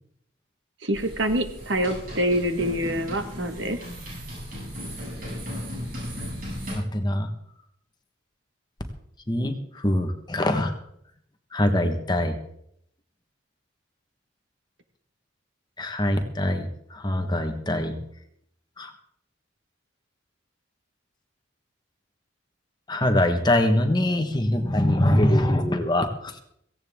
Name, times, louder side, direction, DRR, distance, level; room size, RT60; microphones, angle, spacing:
voice 1, 0.8-3.8, equal, 65° right, 7 dB, 1.6 m, -26 dB
sound 1, 0.9-6.7, equal, 45° right, 7.6 m, -36 dB
voice 2, 6.7-7.3 9.3-10.7 11.5-12.3 15.8-18.0 18.8-18.9 22.9-26.4, left 1 dB, 20° left, 6 dB, 1.3 m, -23 dB
17.0 x 16.5 x 3.6 m, 0.70 s
head